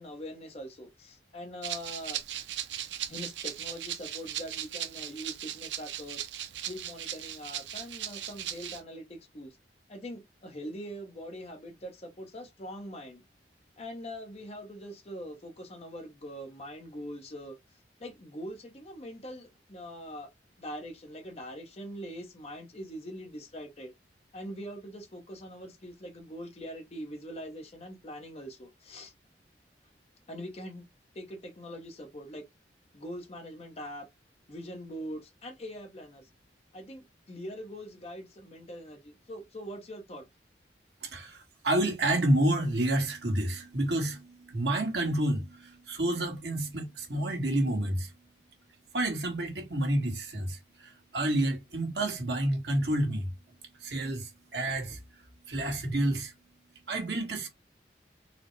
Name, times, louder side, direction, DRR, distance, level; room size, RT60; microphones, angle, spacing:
voice 1, 0.0-2.2 3.1-6.2 6.6-9.6 9.9-13.2 13.8-17.6 18.0-20.3 20.6-23.9 24.3-29.1 30.3-30.8 31.1-32.4 32.9-34.1 34.5-36.3 36.7-40.2, equal, 35° left, 0.7 m, -42 dB
Rattle (instrument), 1.6-8.8, right 11 dB, 90° right, 0.5 m, -38 dB
voice 2, 41.0-48.1 48.9-53.3 53.8-55.0 55.5-56.3 56.9-57.5, right 1 dB, 70° right, 1.3 m, -29 dB
4.0 x 2.0 x 3.1 m
head